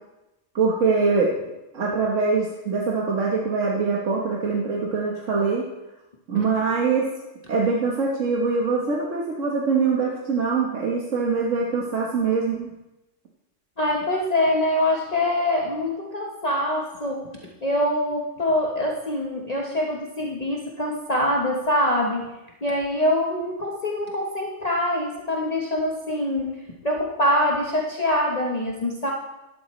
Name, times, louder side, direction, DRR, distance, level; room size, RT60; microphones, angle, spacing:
voice 1, 0.5-1.3 1.7-5.7 6.3-7.0 7.5-12.7, right 4 dB, 80° right, -2 dB, 1.6 m, -23 dB
voice 2, 13.8-22.3 22.6-29.1, left 1 dB, 35° left, -2 dB, 1.1 m, -24 dB
12.0 x 11.5 x 3.1 m, 0.99 s
omnidirectional pair, 1.3 m